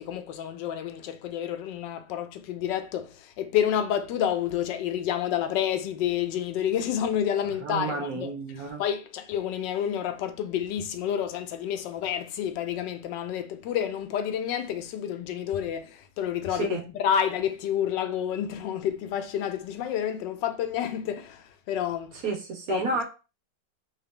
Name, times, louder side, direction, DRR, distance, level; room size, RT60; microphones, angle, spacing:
voice 1, 0.0-8.3 8.8-22.2 22.7-22.8, left 9 dB, 80° left, 1.2 m, -29 dB
voice 2, 7.6-8.8 16.5-16.8 22.2-23.0, right 3 dB, 60° right, 1.1 m, -30 dB
3.1 x 2.8 x 3.5 m
omnidirectional pair, 1.9 m